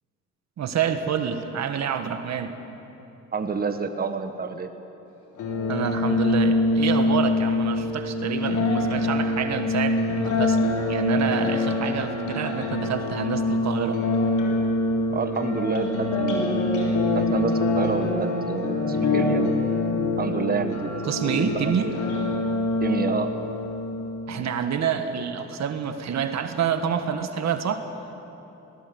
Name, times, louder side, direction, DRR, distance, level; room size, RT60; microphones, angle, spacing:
voice 1, 0.6-2.5 5.7-10.6 10.9-14.0 21.0-21.9 24.3-27.8, right 7 dB, 65° right, 8 dB, 1.5 m, -27 dB
voice 2, 3.3-4.7 15.1-16.6 17.1-19.6 20.2-22.0 22.8-23.3, right 4 dB, 30° right, 7 dB, 1.4 m, -29 dB
sound 1, 5.4-24.3, left 2 dB, 80° left, 3.8 m, -25 dB
21.5 x 18.0 x 7.8 m, 3.0 s
cardioid pair, 90°, 30 cm